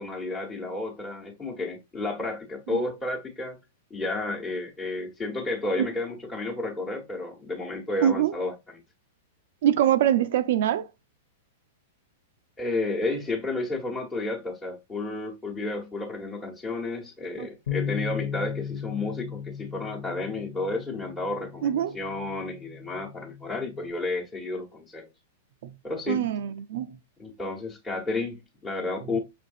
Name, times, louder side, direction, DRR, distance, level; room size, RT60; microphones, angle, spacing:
voice 1, 0.0-3.6 3.9-8.8 12.6-25.1 25.8-26.3 27.2-29.2, left 2 dB, 15° left, 1.1 m, -32 dB
voice 2, 8.0-8.3 9.6-10.9 17.4-17.5 21.6-22.0 25.6-25.7 26.1-27.0, right 10 dB, 60° right, 0.4 m, -24 dB
Bass guitar, 17.7-23.9, left 8 dB, 75° left, 0.7 m, -36 dB
6.2 x 2.5 x 2.5 m
hypercardioid pair, 105°, 0 cm